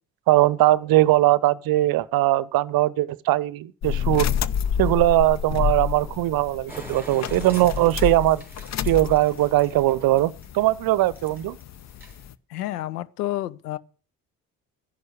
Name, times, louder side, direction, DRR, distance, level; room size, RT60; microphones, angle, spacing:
voice 1, 0.3-4.3 4.8-8.4 8.8-11.6, right 16 dB, 50° right, 0.8 m, -20 dB
sound 1, 3.8-12.3, left 9 dB, 35° left, 0.7 m, -29 dB
sound 2, 6.7-10.6 11.1-11.6 11.9-12.3, right 2 dB, 5° right, 3.6 m, -43 dB
voice 2, 12.5-13.8, left 15 dB, 75° left, 0.8 m, -29 dB
13.0 x 11.0 x 6.6 m
figure-of-eight pair, 45°, 47 cm